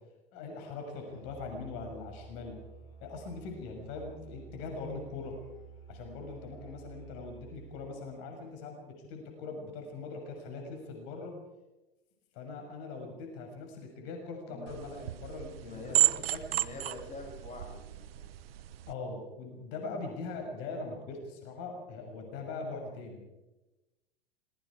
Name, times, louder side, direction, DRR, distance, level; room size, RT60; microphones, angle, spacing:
voice 1, 0.3-2.6 3.0-5.4 5.9-11.3 12.3-16.4 18.9-23.2, left 3 dB, 55° left, 2 dB, 6.4 m, -41 dB
Musical instrument, 1.0-8.1, right 6 dB, 70° left, 7.8 m, -51 dB
sound 1, 14.7-18.9, right 14 dB, 70° right, 1.0 m, -32 dB
voice 2, 15.6-16.1 16.5-18.3, left 3 dB, 25° left, 1 dB, 7.0 m, -45 dB
26.5 x 21.0 x 4.9 m, 1.0 s
hypercardioid pair, 100°, 31 cm